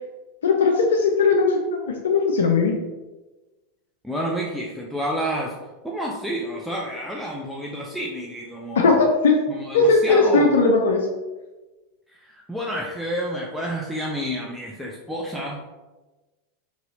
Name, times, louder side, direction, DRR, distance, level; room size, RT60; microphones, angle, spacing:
voice 1, 0.4-2.8 8.8-9.4 9.7-11.1, left 3 dB, 80° left, 2 dB, 0.4 m, -18 dB
voice 2, 4.0-5.5 5.8-9.1 9.5-10.6 12.2-15.8, equal, ahead, -3 dB, 0.5 m, -29 dB
2.8 x 2.6 x 3.1 m, 1.2 s
hypercardioid pair, 95°, 0 cm